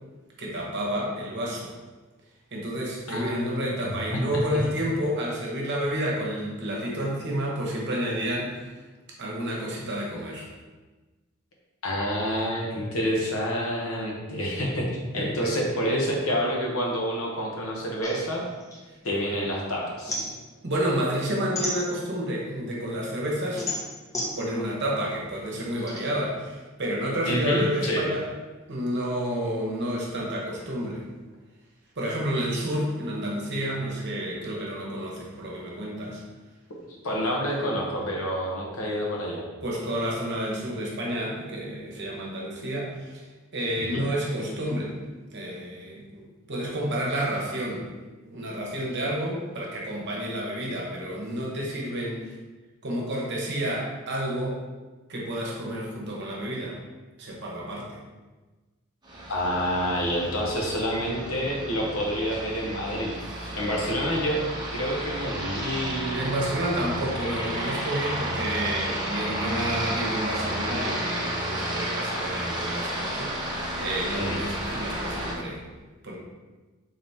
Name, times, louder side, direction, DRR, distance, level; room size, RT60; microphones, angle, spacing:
voice 1, 0.4-1.7 2.5-8.6 9.2-10.5 15.1-15.5 20.6-23.6 24.4-28.3 28.7-31.0 32.0-36.2 39.6-43.3 43.5-45.0 45.3-47.9 48.2-52.2 52.8-54.6 55.1-56.8 57.2-58.0 63.4-63.6 66.1-75.6 76.0-76.2, equal, 55° right, -3 dB, 0.9 m, -30 dB
voice 2, 3.1-3.9 11.8-18.4 19.0-20.3 27.3-28.1 37.0-39.4 43.8-44.0 59.3-63.1 63.5-64.4 64.7-66.4 74.1-74.4, equal, 75° left, -2 dB, 0.9 m, -28 dB
sound 1, 18.0-19.5 19.8-22.4 22.8-26.0, left 1 dB, 15° left, 0.7 m, -34 dB
Aircraft, 59.0-75.4, right 1 dB, 20° right, 0.7 m, -32 dB
3.9 x 3.4 x 2.7 m, 1.3 s
head